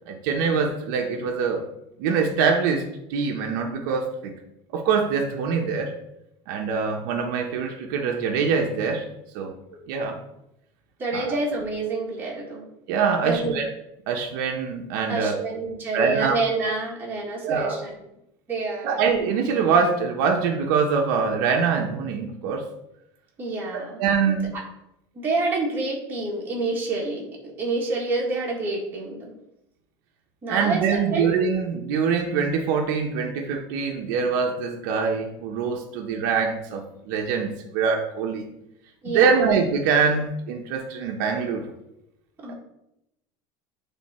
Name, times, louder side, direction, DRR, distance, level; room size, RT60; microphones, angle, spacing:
voice 1, 0.1-1.7 2.0-4.3 4.7-5.9 6.5-9.1 9.3-9.5 9.9-10.2 11.1-11.4 12.9-13.7 14.1-15.4 15.9-16.3 17.4-17.8 18.8-22.7 24.0-24.5 30.5-38.5 39.0-41.7 42.5-42.6, right 5 dB, 70° right, 2 dB, 1.0 m, -24 dB
voice 2, 11.0-12.7 13.2-13.7 15.1-17.9 18.5-19.0 23.4-24.3 25.2-29.3 30.4-31.3 39.0-39.4 42.4-42.5, right 3 dB, 20° right, -4 dB, 1.8 m, -28 dB
9.3 x 3.6 x 4.3 m, 0.84 s
cardioid pair, 165°, 11 cm